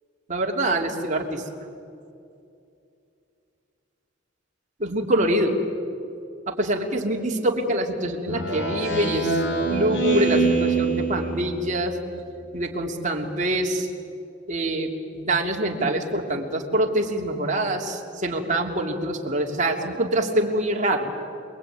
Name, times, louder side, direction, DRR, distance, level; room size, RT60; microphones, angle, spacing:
voice 1, 0.3-1.4 4.8-5.6 6.5-12.0 12.5-13.9 14.5-21.1, right 1 dB, 40° right, 0 dB, 3.2 m, -25 dB
Speech synthesizer, 8.3-11.8, right 3 dB, 65° left, 4.9 m, -25 dB
28.0 x 22.5 x 9.5 m, 2.6 s
head